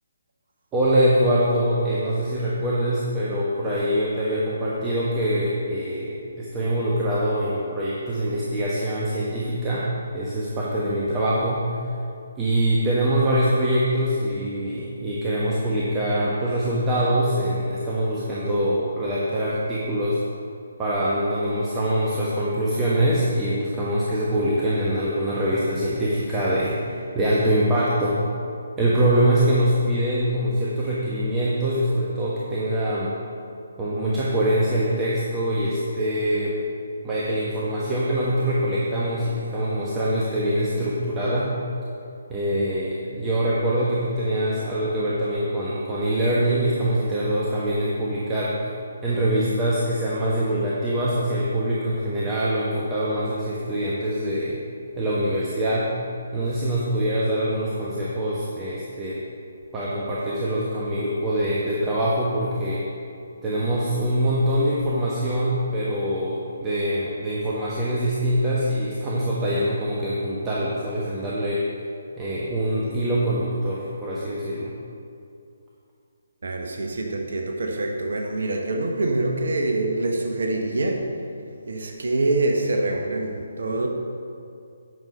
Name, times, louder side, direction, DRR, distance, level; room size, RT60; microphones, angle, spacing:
voice 1, 0.7-11.6 12.4-20.2 20.8-28.2 28.8-33.2 33.8-36.6 37.0-41.5 42.3-48.6 49.0-54.6 55.0-55.9 56.3-59.2 59.7-62.8 63.4-71.6 72.2-74.7, right 1 dB, 15° right, -7 dB, 1.2 m, -24 dB
voice 2, 76.4-81.0 81.7-83.9, right 2 dB, 55° right, 2 dB, 1.1 m, -25 dB
9.5 x 6.5 x 5.5 m, 2.5 s
figure-of-eight pair, 140°, 0 cm